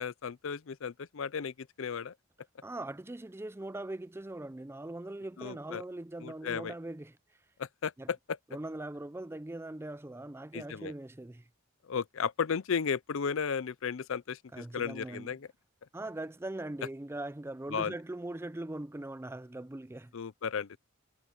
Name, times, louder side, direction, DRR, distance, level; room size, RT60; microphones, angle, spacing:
voice 1, 0.0-2.1 5.4-5.8 6.2-6.7 7.6-8.4 10.5-10.9 11.8-15.5 17.7-17.9 20.1-20.8, left 6 dB, 65° left, 0.5 m, -34 dB
voice 2, 2.6-7.1 8.0-8.1 8.5-11.4 14.5-15.3 15.9-20.1, right 1 dB, 10° right, 0.4 m, -41 dB
head